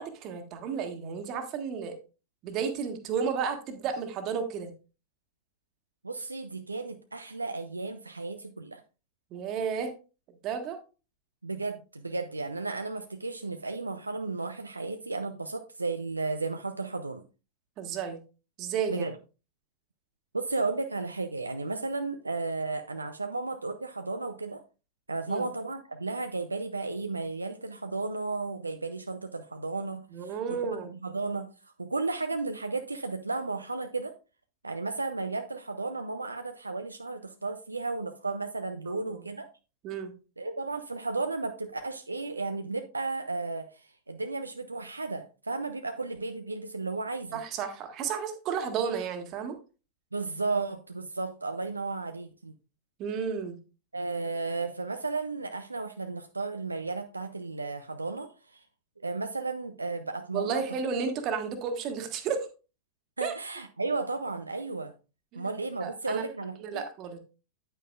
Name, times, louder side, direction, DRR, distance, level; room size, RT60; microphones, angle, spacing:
voice 1, 0.0-2.0 2.4-4.7 9.3-9.9 10.4-10.8 17.8-18.2 18.6-19.1 25.3-25.4 30.1-30.9 38.9-39.2 39.8-40.1 47.3-49.6 53.0-53.6 60.3-62.5 63.2-63.3 65.3-65.5 65.8-66.2 66.6-67.2, right 6 dB, 35° right, 6 dB, 1.6 m, -32 dB
voice 2, 6.0-8.8 11.4-17.2 18.9-19.1 20.3-24.6 25.1-31.5 31.8-34.1 34.6-39.5 40.4-47.4 50.1-52.5 53.9-58.7 59.0-60.6 63.2-64.9 65.3-66.8, right 3 dB, 80° right, 7 dB, 0.5 m, -34 dB
9.3 x 8.8 x 2.4 m, 0.32 s
figure-of-eight pair, 90°, 0 cm